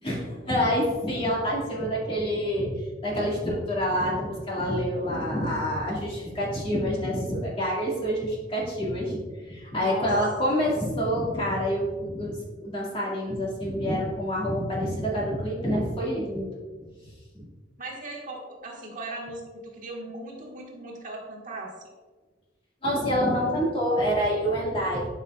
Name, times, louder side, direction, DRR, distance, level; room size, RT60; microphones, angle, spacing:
voice 1, 0.0-9.2 9.5-16.5 17.3-17.4 22.8-25.1, equal, 30° left, -4 dB, 1.9 m, -27 dB
voice 2, 17.8-21.7, right 2 dB, 45° right, -2 dB, 1.5 m, -38 dB
11.5 x 5.6 x 2.3 m, 1.4 s
head